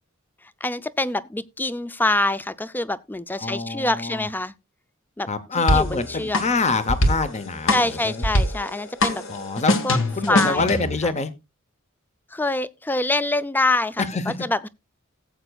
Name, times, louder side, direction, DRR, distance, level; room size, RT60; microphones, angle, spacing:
voice 1, 0.6-4.5 5.2-5.3 5.7-6.4 7.7-9.2 9.8-10.0 10.3-10.7 12.3-14.0 14.5-14.7, left 2 dB, 10° left, 0.4 m, -25 dB
voice 2, 3.4-4.3 5.3-8.2 9.3-9.8 10.1-11.3 14.0-14.4, left 4 dB, 35° left, 0.8 m, -25 dB
sound 1, 5.7-11.0, left 1 dB, 65° left, 1.4 m, -24 dB
17.5 x 7.9 x 2.3 m
head